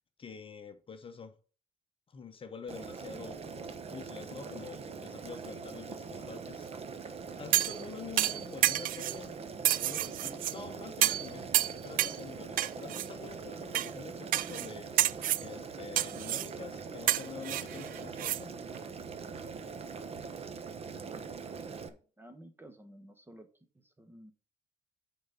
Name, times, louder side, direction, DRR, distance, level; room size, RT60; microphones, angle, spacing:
voice 1, 0.2-1.3 2.1-6.7 7.4-9.3 9.7-14.9 15.4-18.5, left 5 dB, 30° left, 0.9 m, -46 dB
Boiling, 2.7-21.9, right 5 dB, 35° right, 1.0 m, -43 dB
sound 1, 7.5-7.8 8.2-9.2 9.6-10.5 11.0-11.3 11.5-12.2 12.6-13.1 13.7-13.9 14.3-14.7 15.0-15.5 16.0-16.5 17.1-18.4 18.7-18.8, right 13 dB, 55° right, 0.4 m, -29 dB
voice 2, 21.9-23.5 23.7-24.3, right 1 dB, 15° right, 1.1 m, -53 dB
8.7 x 4.1 x 5.7 m
cardioid pair, 110°, 17 cm